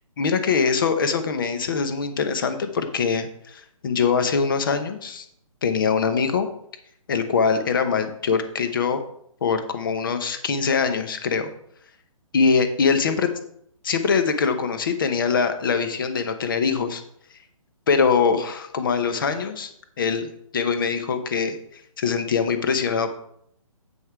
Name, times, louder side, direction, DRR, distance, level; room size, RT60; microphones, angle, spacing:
voice 1, 0.2-5.2 5.6-6.5 7.1-9.0 9.4-11.5 12.3-13.3 13.8-17.0 17.9-19.7 20.0-23.1, left 5 dB, 35° left, 9 dB, 1.0 m, -23 dB
8.2 x 5.5 x 4.6 m, 0.69 s
hypercardioid pair, 170°, 18 cm